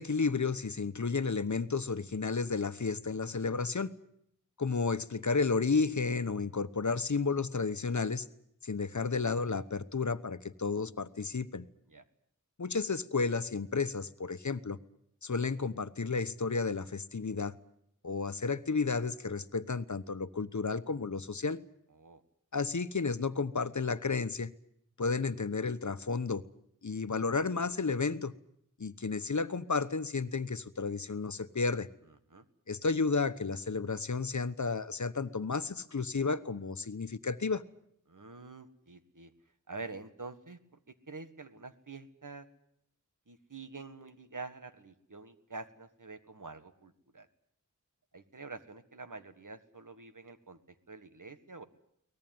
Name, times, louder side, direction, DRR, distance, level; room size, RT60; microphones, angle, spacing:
voice 1, 0.0-3.9 4.6-8.3 8.6-11.7 12.6-14.8 15.2-17.5 18.0-21.6 22.5-24.5 25.0-26.4 26.8-28.3 28.8-31.9 32.7-37.6, left 4 dB, 65° left, 13 dB, 1.1 m, -32 dB
voice 2, 21.9-22.2 32.3-32.5 38.1-39.3 39.7-40.6 40.9-42.5 43.3-47.3 48.1-51.6, right 3 dB, 80° right, 9 dB, 1.8 m, -47 dB
23.5 x 19.0 x 9.4 m, 0.74 s
wide cardioid pair, 50°, 31 cm